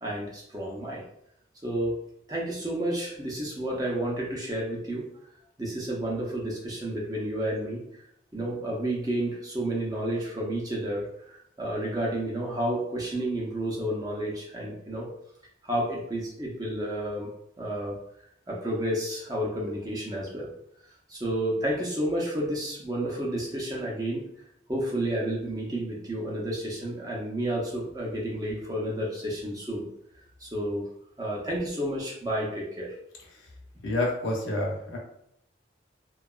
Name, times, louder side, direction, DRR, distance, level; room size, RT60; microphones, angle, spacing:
voice 1, 0.0-1.0 1.6-2.0 2.3-5.0 5.6-7.8 8.3-15.1 15.6-17.3 17.6-18.0 18.5-20.5 21.1-24.2 24.7-29.9 30.4-30.9 31.2-32.9, right 1 dB, 20° right, -4 dB, 0.5 m, -31 dB
voice 2, 33.8-35.0, left 1 dB, 85° left, -2 dB, 0.8 m, -28 dB
2.8 x 2.3 x 2.3 m, 0.73 s
head